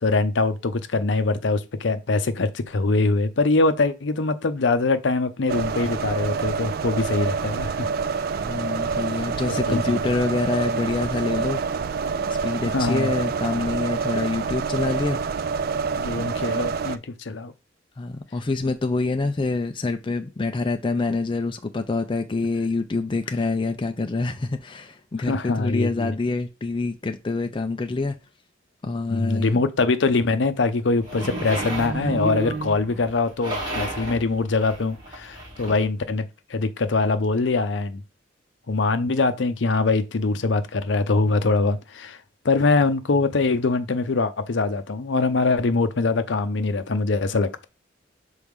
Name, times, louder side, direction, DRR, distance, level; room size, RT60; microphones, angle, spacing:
voice 1, 0.0-7.9 9.5-10.0 12.7-13.1 15.9-17.5 25.3-26.1 29.1-38.0 38.7-42.2 42.4-47.6, left 3 dB, 65° left, 0.6 m, -23 dB
sound 1, 5.5-17.0, right 5 dB, 50° right, 0.4 m, -27 dB
voice 2, 8.4-11.6 12.4-15.2 18.0-28.2 28.8-29.6, left 3 dB, 25° left, 0.4 m, -26 dB
sound 2, 31.0-35.8, right 1 dB, 25° right, 2.9 m, -35 dB
sound 3, 31.1-33.2, right 3 dB, 65° right, 1.5 m, -31 dB
6.4 x 4.1 x 3.6 m
head